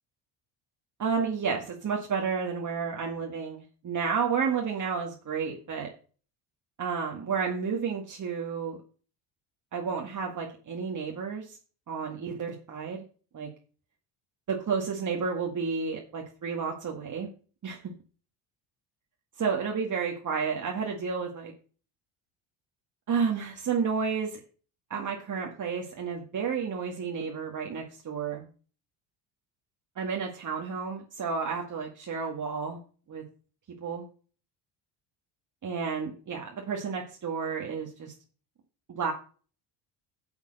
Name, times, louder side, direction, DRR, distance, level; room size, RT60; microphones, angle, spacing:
voice 1, 1.0-5.9 6.8-8.8 9.7-11.6 11.9-13.0 13.3-13.5 14.5-17.3 17.6-17.8 19.4-21.5 23.1-24.4 24.9-28.4 30.0-32.8 33.1-33.2 33.8-34.1 35.6-38.1 38.9-39.1, right 5 dB, 40° right, 1 dB, 2.1 m, -31 dB
8.3 x 7.4 x 6.6 m, 0.39 s
supercardioid pair, 85°, 46 cm